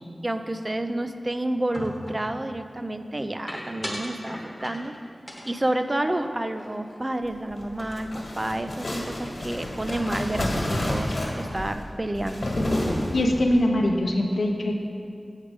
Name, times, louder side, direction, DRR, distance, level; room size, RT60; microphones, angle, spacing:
voice 1, 0.2-4.9 5.5-12.5, right 1 dB, 30° right, 8 dB, 0.3 m, -29 dB
sound 1, 1.7-2.3 3.5-5.0 5.3-7.0 7.3-7.5 7.8-8.2, equal, 5° left, 1.0 m, -39 dB
sound 2, 7.5-13.5, left 1 dB, 70° left, 1.4 m, -29 dB
voice 2, 13.1-14.7, left 1 dB, 85° left, 2 dB, 0.6 m, -22 dB
7.3 x 5.0 x 4.7 m, 2.4 s
wide cardioid pair, 65°, 0 cm